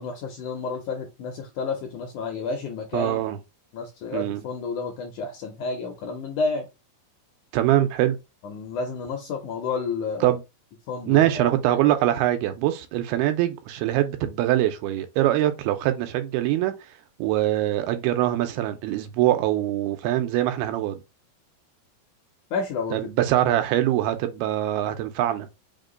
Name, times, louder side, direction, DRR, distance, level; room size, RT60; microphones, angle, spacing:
voice 1, 0.0-3.3 3.7-6.7 8.4-10.4 10.9-11.8 22.5-23.1, left 4 dB, 75° left, 1.8 m, -31 dB
voice 2, 2.9-3.4 4.1-4.4 7.5-8.2 10.2-10.4 11.1-16.7 17.2-21.0 22.9-25.6, right 13 dB, 90° right, 2.6 m, -23 dB
5.8 x 2.2 x 3.7 m
omnidirectional pair, 4.3 m